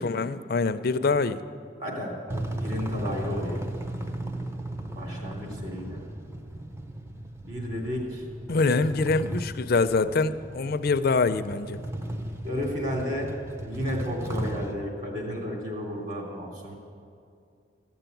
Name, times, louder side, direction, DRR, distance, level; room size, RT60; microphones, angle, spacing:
voice 1, 0.0-1.4 8.5-11.8, left 4 dB, 55° left, 11 dB, 0.5 m, -25 dB
voice 2, 1.8-3.6 4.9-6.0 7.4-8.3 12.4-13.3 13.6-16.7, equal, 45° right, -1 dB, 2.9 m, -33 dB
sound 1, 2.3-14.7, right 1 dB, 15° right, 0.6 m, -35 dB
14.0 x 7.0 x 9.1 m, 2.4 s
head